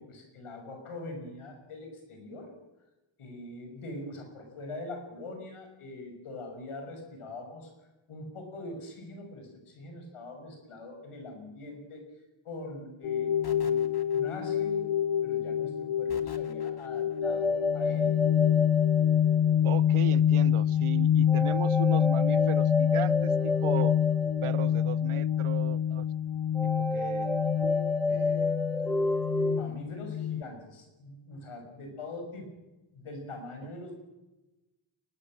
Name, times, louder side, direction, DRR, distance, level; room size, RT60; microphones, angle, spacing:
voice 1, 0.0-2.5 3.2-7.7 8.1-12.0 12.4-14.9 15.2-18.1 29.4-32.5 32.9-34.0, left 2 dB, 90° left, 4 dB, 6.5 m, -43 dB
sound 1, 13.0-30.4, left 9 dB, 65° left, 0.9 m, -27 dB
sound 2, 13.4-14.7 16.1-17.2, left 3 dB, 50° left, 2.5 m, -50 dB
sound 3, 17.2-19.9 21.3-25.2 26.5-29.6, left 2 dB, ahead, 2.0 m, -30 dB
voice 2, 19.6-24.0 24.4-26.1 26.6-27.4 28.1-28.6, right 12 dB, 80° right, 20 dB, 0.9 m, -37 dB
23.5 x 20.0 x 7.7 m, 1.0 s
cardioid pair, 45°, 49 cm